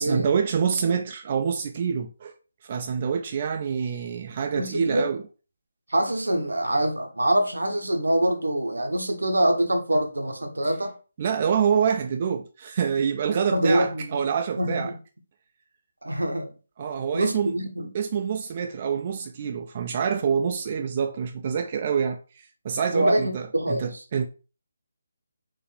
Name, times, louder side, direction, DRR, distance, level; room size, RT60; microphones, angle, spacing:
voice 1, 0.0-2.3 2.6-5.2 11.2-14.9 16.8-17.6 17.9-24.3, right 7 dB, 35° right, 0.4 m, -26 dB
voice 2, 4.5-5.1 5.9-11.0 13.5-14.2 14.6-15.0 16.0-16.5 17.1-17.9 22.9-23.9, right 1 dB, 80° right, 0.9 m, -24 dB
4.0 x 2.6 x 4.2 m
figure-of-eight pair, 150°, 0 cm